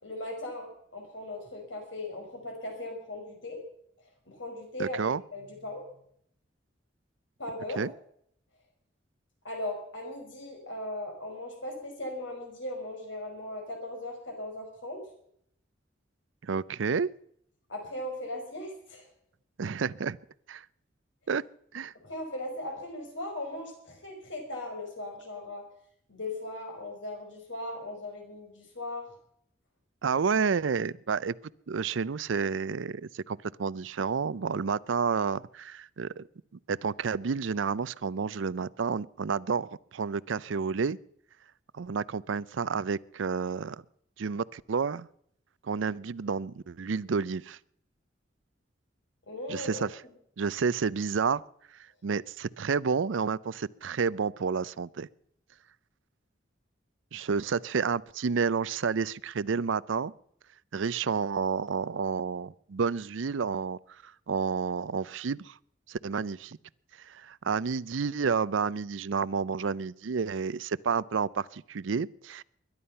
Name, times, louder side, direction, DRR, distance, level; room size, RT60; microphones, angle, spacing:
voice 1, 0.0-3.6 4.3-5.8 7.4-7.8 9.4-15.0 17.7-19.1 22.0-25.6 26.1-29.1 49.3-49.9, left 1 dB, 85° left, 3 dB, 5.4 m, -38 dB
voice 2, 4.8-5.2 7.8-7.9 16.4-17.1 19.6-20.2 20.5-20.6 21.3-21.4 21.7-21.9 30.0-31.3 31.7-36.2 36.7-41.0 41.7-43.8 44.2-45.1 45.6-47.6 49.5-49.9 50.4-51.4 52.0-55.1 57.1-60.1 60.7-65.6 65.9-66.6 67.0-72.4, right 5 dB, 90° right, 20 dB, 0.5 m, -30 dB
21.5 x 11.5 x 5.6 m, 0.69 s
head